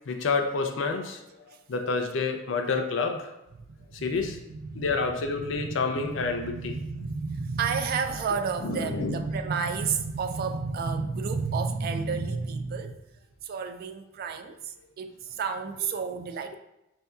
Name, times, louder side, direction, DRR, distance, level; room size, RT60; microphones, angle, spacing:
voice 1, 0.1-1.2 1.7-3.3 4.0-4.4 4.7-6.8 8.6-9.3 15.8-15.9, left 4 dB, 70° left, 5 dB, 0.5 m, -28 dB
voice 2, 4.0-13.0 13.4-16.6, right 5 dB, 50° right, 7 dB, 0.3 m, -31 dB
5.4 x 2.7 x 2.3 m, 0.89 s
head